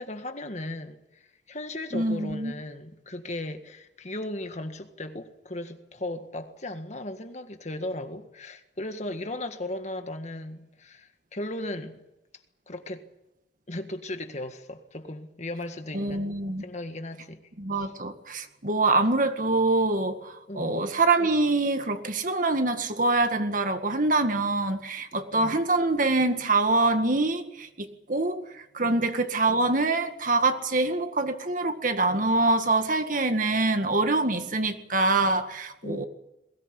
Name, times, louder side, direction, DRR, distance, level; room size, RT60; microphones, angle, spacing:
voice 1, 0.0-12.0 12.7-13.1 13.7-16.3 16.6-17.4 17.7-17.9 20.5-20.9 25.3-25.6 28.8-29.0 35.8-36.1, left 1 dB, 40° left, 1.7 m, -36 dB
voice 2, 1.9-2.5 15.9-16.6 17.6-28.4 28.7-36.1, right 2 dB, 50° right, 1.9 m, -25 dB
22.0 x 18.0 x 9.9 m
head